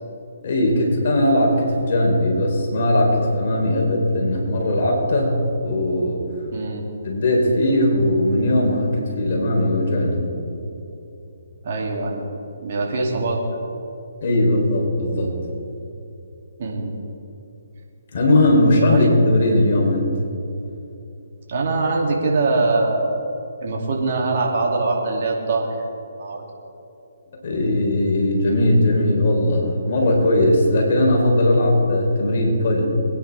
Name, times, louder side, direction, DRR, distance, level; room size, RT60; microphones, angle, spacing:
voice 1, 0.4-6.2 7.0-10.2 14.2-15.3 18.1-20.1 27.4-32.8, left 1 dB, 50° left, -1 dB, 3.7 m, -19 dB
voice 2, 6.5-6.8 11.6-12.2 12.6-13.6 16.6-17.0 18.9-19.1 21.5-23.2 23.6-25.8 26.2-26.4, right 3 dB, 50° right, -1 dB, 2.8 m, -23 dB
22.0 x 10.0 x 3.6 m, 2.8 s
figure-of-eight pair, 140°, 0 cm